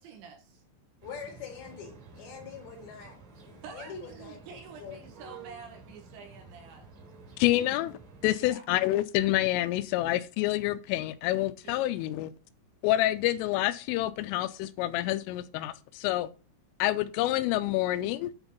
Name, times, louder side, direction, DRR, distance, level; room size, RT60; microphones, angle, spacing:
voice 1, 0.0-0.4 3.6-6.9 8.3-8.7 11.6-11.8, right 6 dB, 70° right, 3.3 m, -48 dB
voice 2, 1.0-3.2 3.5-4.4 4.8-5.0, left 6 dB, 60° left, 3.4 m, -43 dB
Town Square Ambience, 1.0-8.3, right 4 dB, 50° right, 3.7 m, -51 dB
voice 3, 7.4-12.3 12.8-16.3 16.8-18.3, left 15 dB, 90° left, 3.2 m, -28 dB
9.5 x 4.5 x 5.3 m
omnidirectional pair, 5.7 m